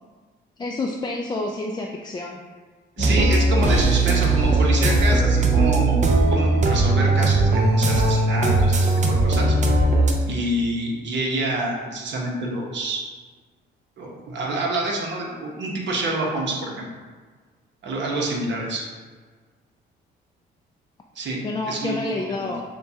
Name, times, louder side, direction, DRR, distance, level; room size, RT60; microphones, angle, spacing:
voice 1, 0.6-2.4 3.0-3.2 4.2-4.5 21.4-22.6, left 2 dB, 20° left, 0 dB, 0.3 m, -29 dB
sound 1, 3.0-10.1, right 2 dB, 35° right, 0.6 m, -19 dB
voice 2, 3.0-9.6 10.3-13.0 14.0-16.9 17.8-18.8 21.1-21.4 21.7-21.9 22.4-22.5, right 2 dB, 65° right, -1 dB, 1.0 m, -27 dB
6.5 x 2.3 x 2.8 m, 1.5 s
cardioid pair, 90°, 20 cm